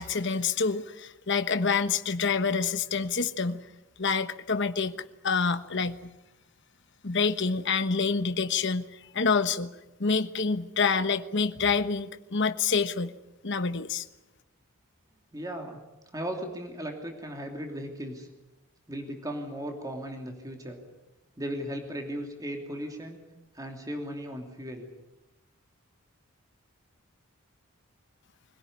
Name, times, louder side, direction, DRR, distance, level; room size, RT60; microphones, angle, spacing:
voice 1, 0.0-3.6 4.0-4.9 5.2-6.1 7.0-9.7 10.0-13.1 13.4-14.0, left 5 dB, 55° left, 11 dB, 1.2 m, -27 dB
voice 2, 15.3-15.8 16.1-18.3 18.9-20.8 21.4-23.2 23.5-24.9, equal, 15° right, 3 dB, 2.8 m, -36 dB
24.5 x 17.5 x 9.9 m, 0.99 s
head